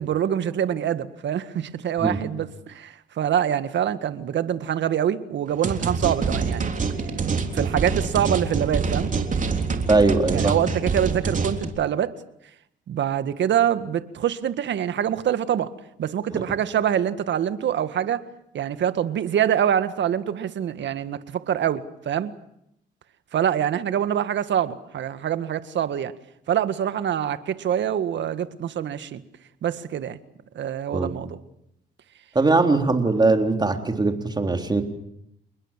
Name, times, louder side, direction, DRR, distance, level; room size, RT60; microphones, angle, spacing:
voice 1, 0.0-6.7 7.5-9.1 10.3-12.1 12.9-15.7 16.0-18.3 18.5-22.3 23.3-26.1 26.5-29.2 29.6-30.2 30.6-31.4, right 9 dB, 65° right, 12 dB, 1.8 m, -25 dB
sound 1, 5.6-11.6, right 4 dB, 40° right, 3.5 m, -26 dB
voice 2, 9.9-10.6 30.9-31.1 32.4-34.8, right 3 dB, 20° right, 5 dB, 3.6 m, -20 dB
28.5 x 21.0 x 7.5 m, 0.78 s
cardioid pair, 90°, 20 cm